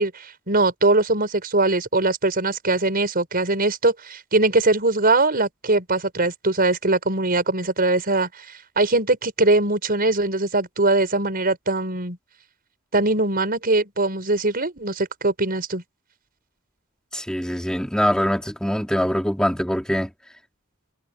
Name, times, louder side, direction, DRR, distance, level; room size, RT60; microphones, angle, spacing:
voice 1, 0.0-8.3 8.8-12.2 12.9-15.8, right 2 dB, 45° right, 5.4 m, -21 dB
voice 2, 17.1-20.1, equal, 5° left, 2.6 m, -23 dB
head